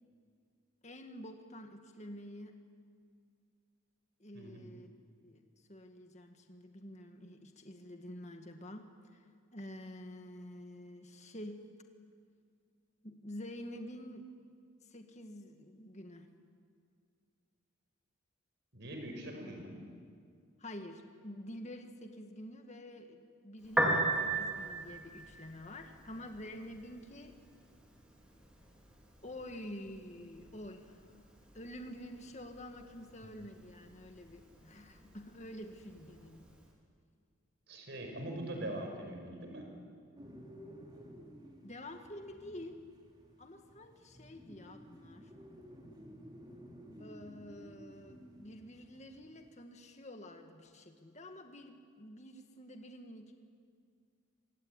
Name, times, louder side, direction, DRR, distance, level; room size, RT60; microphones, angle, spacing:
voice 1, 0.8-2.5 4.2-4.9 5.2-5.4 5.7-9.3 9.5-11.6 13.0-14.3 14.8-16.3 20.6-27.3 29.2-31.2 31.5-36.5 41.6-42.8 43.4-45.3 47.0-53.3, left 1 dB, 30° left, 5 dB, 1.9 m, -48 dB
voice 2, 18.7-19.8 37.7-39.7, right 1 dB, 55° right, 3 dB, 5.8 m, -42 dB
Piano, 23.6-36.6, right 2 dB, 5° right, 3.3 m, -40 dB
sound 1, 40.2-49.5, equal, 20° right, 3.2 m, -54 dB
25.5 x 23.0 x 9.8 m, 2.2 s
head